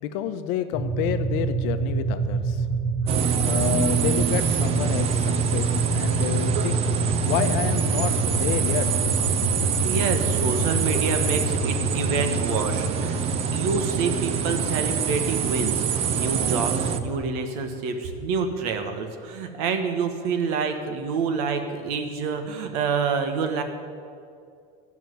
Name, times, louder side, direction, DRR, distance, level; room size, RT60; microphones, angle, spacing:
voice 1, 0.0-2.6 3.4-5.7 5.9-6.8 7.2-8.9, left 10 dB, 60° left, 9 dB, 0.8 m, -29 dB
sound 1, 0.7-17.1, right 3 dB, 35° left, 1.6 m, -27 dB
sound 2, 3.1-17.0, right 8 dB, 30° right, 0.6 m, -26 dB
voice 2, 9.8-23.6, right 5 dB, 70° right, 6 dB, 1.4 m, -27 dB
13.0 x 6.0 x 9.3 m, 2.3 s
cardioid pair, 165°, 20 cm